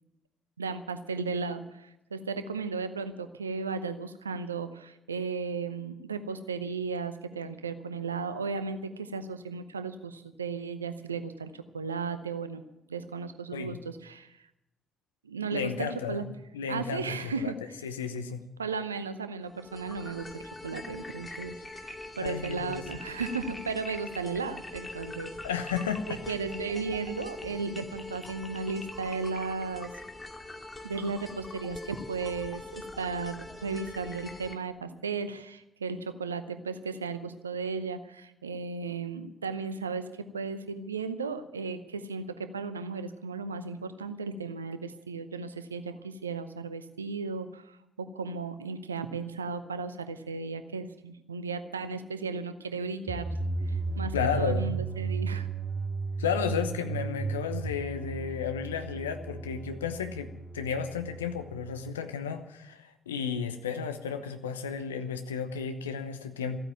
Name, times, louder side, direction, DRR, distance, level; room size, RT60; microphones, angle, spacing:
voice 1, 0.6-12.6 12.9-14.5 15.2-16.2 16.7-17.8 18.6-25.3 26.1-29.9 30.8-53.3 53.6-55.5, right 4 dB, 90° right, 11 dB, 0.7 m, -35 dB
voice 2, 15.5-17.5 17.8-18.4 22.2-22.8 25.4-26.2 54.1-54.7 56.2-66.6, left 7 dB, 85° left, 8 dB, 0.9 m, -33 dB
sound 1, 19.5-34.5, left 2 dB, 20° left, 2.3 m, -43 dB
sound 2, 53.1-61.9, right 4 dB, 15° right, 3.0 m, -34 dB
15.0 x 9.1 x 9.2 m, 0.87 s
figure-of-eight pair, 40°, 0 cm